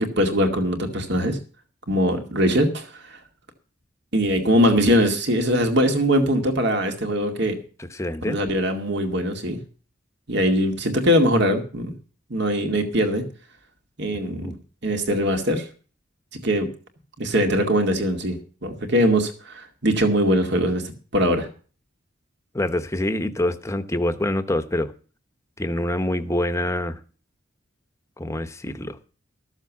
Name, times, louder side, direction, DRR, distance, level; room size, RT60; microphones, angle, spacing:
voice 1, 0.0-1.4 1.9-3.2 4.1-7.6 8.2-9.6 10.3-11.9 12.3-13.2 14.0-14.5 14.8-15.7 16.3-16.7 17.2-21.5, equal, 60° right, 5 dB, 2.2 m, -21 dB
voice 2, 7.9-8.4 14.3-14.5 22.5-24.9 25.6-27.0 28.2-29.0, left 1 dB, 15° left, 10 dB, 0.9 m, -25 dB
14.0 x 7.3 x 7.3 m, 0.38 s
head